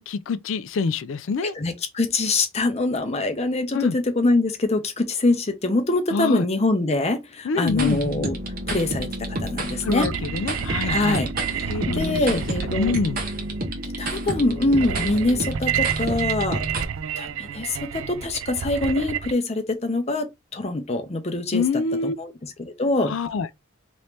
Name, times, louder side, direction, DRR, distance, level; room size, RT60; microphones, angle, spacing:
voice 1, 0.0-1.5 3.7-4.0 6.1-6.5 7.4-8.0 9.8-11.2 11.7-12.4 12.8-13.2 21.5-22.2 23.0-23.5, left 5 dB, 65° left, 0.4 m, -26 dB
voice 2, 1.6-8.4 8.7-10.1 10.9-12.9 14.0-16.6 17.2-21.6 22.0-23.2, left 2 dB, 30° left, 0.7 m, -24 dB
sound 1, 7.6-16.8, right 1 dB, 45° right, 0.9 m, -30 dB
sound 2, 9.9-19.3, right 9 dB, 75° right, 0.3 m, -30 dB
3.1 x 2.7 x 3.2 m
head